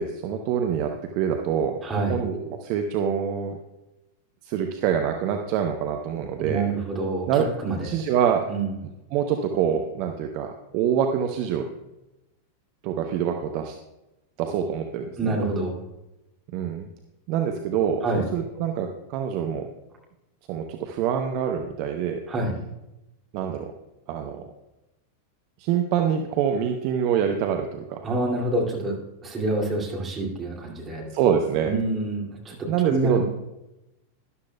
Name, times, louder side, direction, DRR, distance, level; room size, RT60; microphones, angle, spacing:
voice 1, 0.0-1.8 2.1-3.6 4.4-6.7 7.3-7.5 7.8-8.4 9.1-11.7 12.8-13.7 14.4-15.4 16.5-16.9 17.3-18.0 18.3-19.7 20.5-22.2 23.3-23.7 24.1-24.4 25.6-28.0 31.1-31.7 32.7-33.2, right 8 dB, 45° right, 4 dB, 0.7 m, -25 dB
voice 2, 1.8-2.2 6.4-8.0 8.5-8.7 15.2-15.7 18.0-18.3 22.3-22.6 28.0-29.0 29.2-31.1 31.6-33.2, right 2 dB, 20° right, -2 dB, 2.5 m, -27 dB
12.5 x 11.5 x 2.3 m, 0.96 s
figure-of-eight pair, 90°, 0 cm